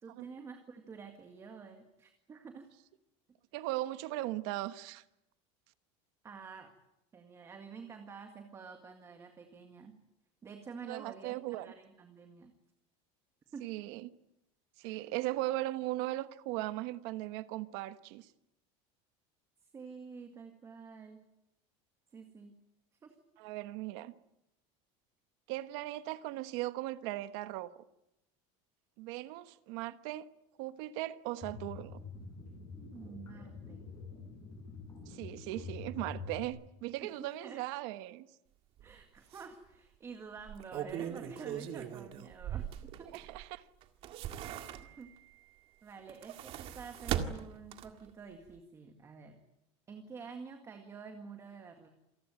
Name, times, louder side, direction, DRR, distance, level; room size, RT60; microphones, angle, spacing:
voice 1, 0.0-2.7 6.2-6.7 7.1-10.0 10.4-12.5 13.5-13.7 14.8-15.0 19.6-21.2 22.1-22.6 23.0-23.2 32.9-33.8 37.0-37.6 38.8-43.1 44.8-45.1 45.8-49.4 49.9-51.9, right 5 dB, 20° right, 1.9 m, -49 dB
voice 2, 3.5-5.0 10.9-11.7 13.6-14.1 14.8-18.3 23.4-24.1 25.5-27.8 29.0-30.3 30.6-32.0 35.1-38.3 43.1-43.7, right 16 dB, 60° right, 1.2 m, -38 dB
sound 1, 31.4-36.5, left 4 dB, 20° left, 7.4 m, -46 dB
sound 2, 38.8-38.9 39.3-39.4 40.4-43.4 43.8-45.2 46.0-48.1 48.5-48.6, right 10 dB, 40° right, 1.9 m, -39 dB
27.5 x 19.5 x 9.1 m
cardioid pair, 175°, 15 cm